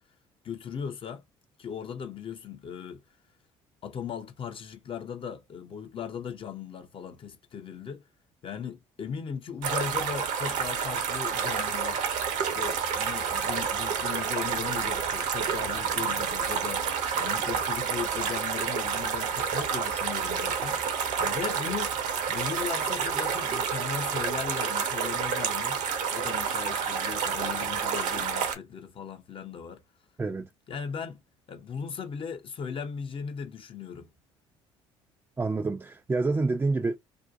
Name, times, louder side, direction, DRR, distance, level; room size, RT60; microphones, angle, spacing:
voice 1, 0.4-1.2 1.6-3.0 3.8-8.0 8.4-12.0 12.4-21.9 22.3-25.8 26.1-29.8 30.7-31.2 31.5-34.1, left 7 dB, 35° left, 0.6 m, -38 dB
sound 1, 9.6-28.5, right 7 dB, 55° right, 0.7 m, -29 dB
voice 2, 30.2-30.5 35.4-37.0, right 3 dB, 15° right, 0.4 m, -27 dB
2.6 x 2.1 x 2.5 m
figure-of-eight pair, 55°, 15 cm